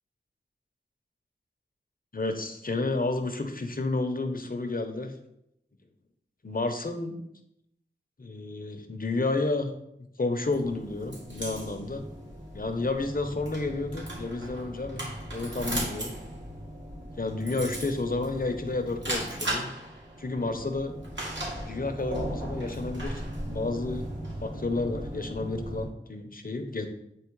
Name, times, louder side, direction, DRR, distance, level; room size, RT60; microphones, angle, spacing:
voice 1, 2.1-5.1 6.4-7.2 8.2-9.7 10.2-12.0 12.5-16.1 17.2-19.7 20.2-20.9 21.6-23.2 23.5-26.9, left 3 dB, 45° left, 6 dB, 0.9 m, -31 dB
sound 1, 10.4-25.8, right 1 dB, 70° right, 2.5 m, -37 dB
8.6 x 3.1 x 4.7 m, 0.80 s
wide cardioid pair, 40°, 20 cm